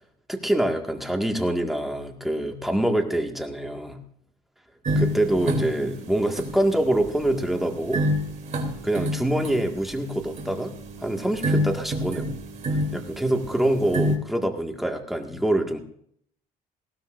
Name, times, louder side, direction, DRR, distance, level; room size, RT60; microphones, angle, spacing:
voice 1, 0.3-4.0 5.0-8.0 8.8-10.7 11.0-12.4 12.9-15.8, right 1 dB, ahead, 2 dB, 1.9 m, -25 dB
sound 1, 4.8-14.2, equal, 45° right, 3.2 m, -29 dB
19.5 x 16.0 x 2.6 m, 0.67 s
cardioid pair, 110°, 17 cm